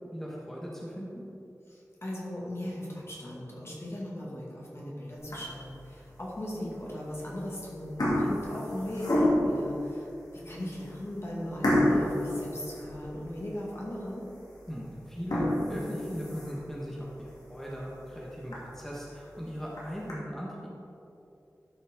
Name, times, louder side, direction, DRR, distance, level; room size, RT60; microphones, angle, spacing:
voice 1, 0.1-1.2 14.7-20.7, equal, 5° left, -5 dB, 1.3 m, -38 dB
voice 2, 1.7-14.2, left 1 dB, 45° left, -5 dB, 2.1 m, -38 dB
sound 1, 5.2-5.7 6.3-6.4 7.3-7.5 7.8-9.6 10.3-10.4 10.7-10.8 11.6-13.4 13.8-13.9 14.4-14.5 15.1-16.7 17.2-17.3 17.7-17.8 18.1-18.2 18.5-18.6 19.5-20.1, left 1 dB, 85° left, 2.0 m, -28 dB
12.0 x 5.6 x 3.7 m, 2.8 s
wide cardioid pair, 75°, 6 cm